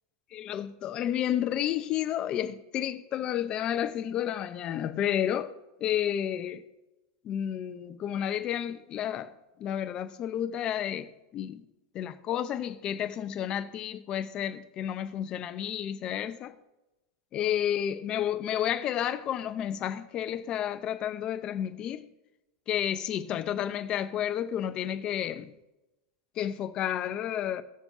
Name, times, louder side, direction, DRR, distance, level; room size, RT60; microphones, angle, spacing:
voice 1, 0.3-5.5 5.8-6.6 7.2-9.3 9.6-11.6 11.9-16.5 17.3-22.0 22.7-25.5 26.4-27.6, left 10 dB, 40° left, 0.8 m, -31 dB
17.5 x 7.0 x 2.8 m
hypercardioid pair, 115°, 2 cm